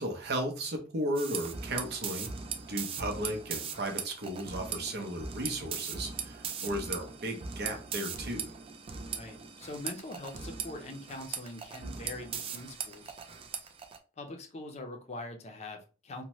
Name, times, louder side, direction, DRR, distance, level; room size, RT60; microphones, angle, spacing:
voice 1, 0.0-2.3 2.7-8.5, right 1 dB, 55° right, 4 dB, 0.7 m, -35 dB
sound 1, 1.1-14.0, right 6 dB, 30° right, 0.3 m, -39 dB
voice 2, 9.1-13.2 14.2-16.2, left 2 dB, 35° left, 4 dB, 0.5 m, -43 dB
2.7 x 2.1 x 2.9 m, 0.34 s
head